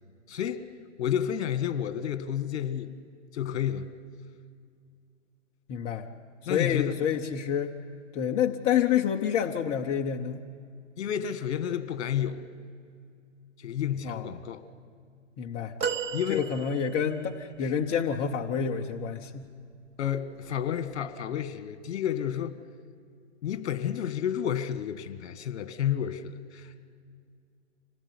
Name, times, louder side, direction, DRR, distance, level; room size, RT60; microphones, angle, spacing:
voice 1, 0.3-0.6 1.0-2.9 3.3-3.9 6.5-7.0 11.0-12.5 13.6-14.6 16.1-16.5 17.6-17.7 20.0-22.6 23.4-26.9, left 9 dB, 55° left, 12 dB, 1.7 m, -31 dB
voice 2, 5.7-6.1 6.5-7.7 8.1-10.4 14.0-14.3 15.4-15.7 16.3-19.5, left 8 dB, 15° left, 2 dB, 0.6 m, -28 dB
sound 1, 15.8-17.2 17.9-18.0, right 6 dB, 15° right, 0.9 m, -33 dB
25.5 x 18.0 x 9.8 m, 2.2 s
hypercardioid pair, 145°, 38 cm